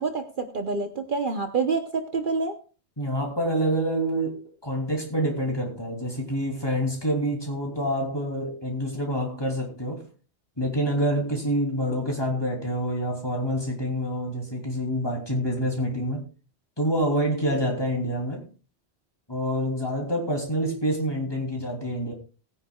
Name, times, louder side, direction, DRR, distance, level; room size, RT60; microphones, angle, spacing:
voice 1, 0.0-2.6, right 4 dB, 50° right, 1.1 m, -27 dB
voice 2, 3.0-10.1 10.6-16.2 16.8-18.4 19.3-22.1, equal, 20° left, 3.1 m, -27 dB
19.5 x 9.7 x 2.4 m
omnidirectional pair, 1.1 m